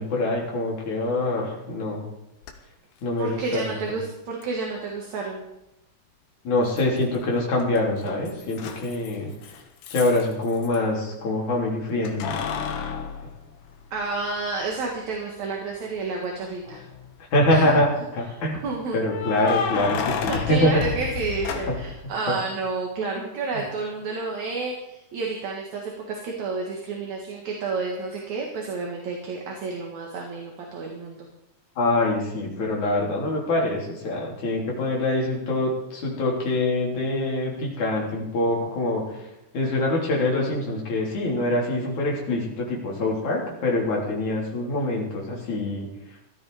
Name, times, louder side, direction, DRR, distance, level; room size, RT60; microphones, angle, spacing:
voice 1, 0.0-2.0 3.0-3.8 6.4-9.3 9.9-12.3 17.3-18.6 18.9-20.7 23.5-23.6 31.8-39.0 39.5-45.9, left 2 dB, 65° left, -2 dB, 5.1 m, -24 dB
Keys jangling, 2.4-2.5 4.4-4.5 6.8-7.3 7.6-10.8 12.0-14.2 14.7-14.8 16.5-17.1 19.0-22.0, left 7 dB, 85° left, 2.9 m, -31 dB
voice 2, 3.2-5.5 13.9-16.8 17.5-17.8 18.3-18.4 18.6-19.0 20.3-31.3, right 4 dB, 65° right, 0 dB, 3.1 m, -30 dB
17.0 x 13.0 x 5.0 m, 0.90 s
omnidirectional pair, 3.6 m